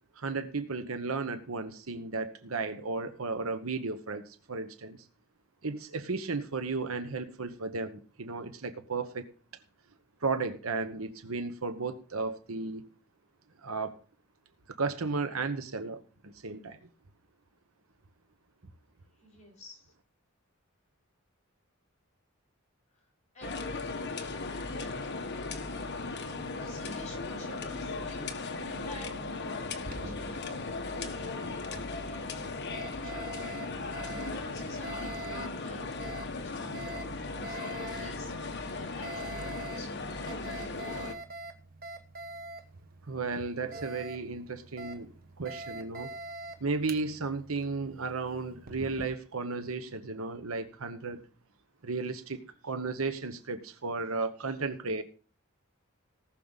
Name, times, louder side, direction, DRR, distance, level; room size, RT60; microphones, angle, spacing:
voice 1, 0.2-5.0 5.6-9.3 10.2-12.9 13.6-14.0 14.7-16.8 43.1-45.1 45.4-46.1 46.6-51.2 51.8-55.0, right 4 dB, 90° right, 9 dB, 1.1 m, -34 dB
voice 2, 19.2-19.9 22.9-23.0 23.3-23.8 26.5-33.6 33.9-37.6 38.0-40.7, left 1 dB, 35° left, -2 dB, 8.0 m, -51 dB
sound 1, 23.4-41.1, left 3 dB, 55° left, 1.4 m, -37 dB
Alarm, 29.7-49.1, right 2 dB, 45° right, 1.2 m, -45 dB
18.5 x 6.6 x 4.1 m, 0.39 s
head